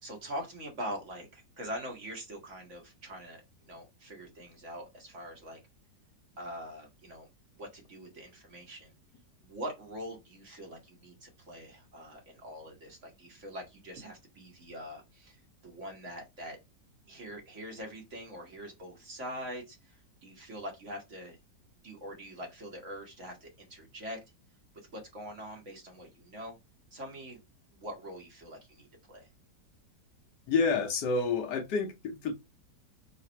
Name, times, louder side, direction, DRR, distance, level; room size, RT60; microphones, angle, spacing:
voice 1, 0.0-3.4 3.7-5.6 6.4-7.3 7.6-8.9 9.4-16.6 17.1-21.4 21.8-24.2 24.9-26.6 26.9-27.4 27.7-29.3, equal, 45° right, 1.4 m, -43 dB
voice 2, 30.5-32.3, left 4 dB, 75° left, 1.3 m, -29 dB
4.0 x 2.4 x 4.2 m
omnidirectional pair, 1.9 m